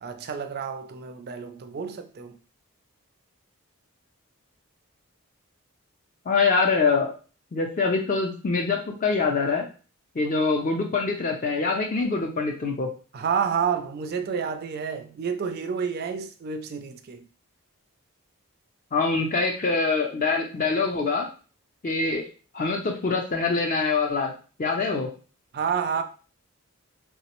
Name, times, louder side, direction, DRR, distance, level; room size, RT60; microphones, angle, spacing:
voice 1, 0.0-2.4 13.1-17.2 25.5-26.0, right 6 dB, 45° right, 0.3 m, -29 dB
voice 2, 6.3-7.1 7.5-9.6 10.2-12.9 18.9-21.3 21.8-22.3 22.5-24.3 24.6-25.1, left 4 dB, 35° left, 0.4 m, -24 dB
3.1 x 2.0 x 2.9 m
head